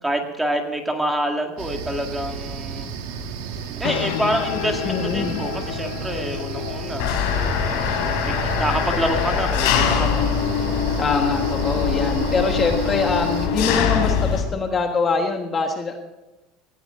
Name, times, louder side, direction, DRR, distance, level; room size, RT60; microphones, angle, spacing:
voice 1, 0.0-2.9 3.8-7.2 8.2-10.3, right 1 dB, 5° right, 3 dB, 2.1 m, -27 dB
sound 1, 1.6-13.5, right 5 dB, 80° right, 2.5 m, -32 dB
sound 2, 3.6-10.7, left 14 dB, 85° left, 0.9 m, -33 dB
voice 2, 4.8-5.4 11.0-16.0, left 4 dB, 25° left, 3 dB, 1.6 m, -24 dB
Engine, 7.0-14.4, left 7 dB, 70° left, 3.9 m, -22 dB
18.5 x 15.5 x 3.8 m, 1.1 s
cardioid pair, 155°, 0 cm